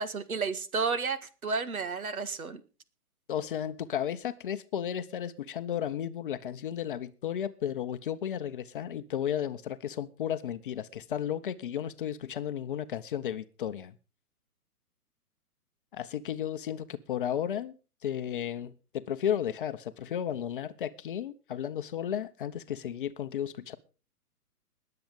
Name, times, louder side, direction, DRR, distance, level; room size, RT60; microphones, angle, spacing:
voice 1, 0.0-2.6, right 4 dB, 65° right, 1.8 m, -32 dB
voice 2, 3.3-14.0 15.9-17.8 18.0-23.8, left 9 dB, 35° left, 0.9 m, -34 dB
20.5 x 7.9 x 5.0 m
figure-of-eight pair, 130°, 46 cm